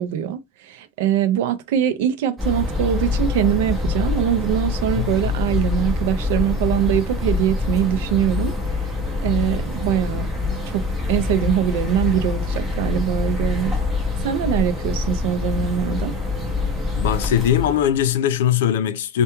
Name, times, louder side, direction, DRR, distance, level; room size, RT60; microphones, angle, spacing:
voice 1, 0.0-8.5 9.2-10.3 10.7-13.7 14.2-16.2, right 10 dB, 60° right, 0.4 m, -22 dB
sound 1, 2.4-18.1, left 3 dB, 5° right, 0.6 m, -25 dB
voice 2, 5.0-5.3 17.0-19.2, left 10 dB, 80° left, 0.4 m, -20 dB
2.3 x 2.2 x 2.9 m
supercardioid pair, 175°, 0 cm